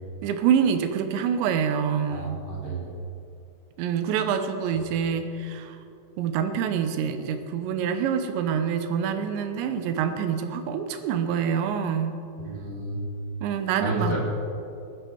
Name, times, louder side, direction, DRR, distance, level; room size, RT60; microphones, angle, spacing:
voice 1, 0.2-2.4 3.8-5.8 6.2-12.2 13.4-14.2, right 7 dB, 85° right, 8 dB, 3.2 m, -26 dB
voice 2, 2.1-2.9 12.4-13.0 13.8-14.2, right 2 dB, 35° right, -6 dB, 3.6 m, -31 dB
20.0 x 10.0 x 4.6 m, 2.7 s
omnidirectional pair, 5.0 m